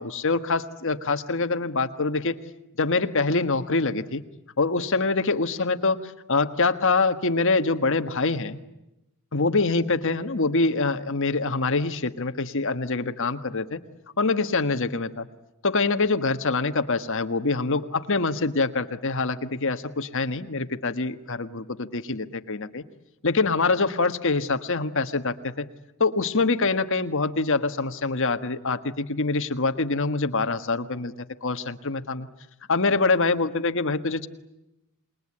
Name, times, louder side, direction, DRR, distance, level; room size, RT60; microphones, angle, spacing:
voice 1, 0.0-2.4 2.8-4.2 4.6-8.6 9.3-13.8 14.2-15.3 15.6-22.8 23.2-25.7 26.0-32.3 32.7-34.3, left 3 dB, 60° left, 8 dB, 1.5 m, -25 dB
28.0 x 21.5 x 9.9 m, 0.92 s
head